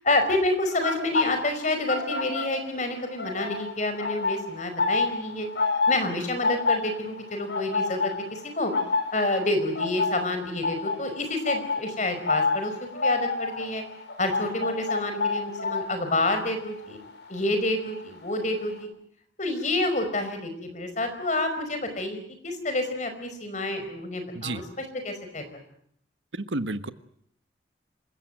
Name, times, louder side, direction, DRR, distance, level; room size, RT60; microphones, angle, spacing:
voice 1, 0.0-5.5 5.9-8.7 9.1-13.8 14.2-17.0 17.3-18.9 19.4-25.4, left 2 dB, 40° left, 7 dB, 5.1 m, -28 dB
Swan at lake late at night, 0.7-2.9 3.1-18.0 18.3-18.6, left 4 dB, 65° left, 4.8 m, -29 dB
voice 2, 26.3-26.9, right 2 dB, 85° right, 11 dB, 1.4 m, -31 dB
27.0 x 16.0 x 9.1 m, 0.68 s
head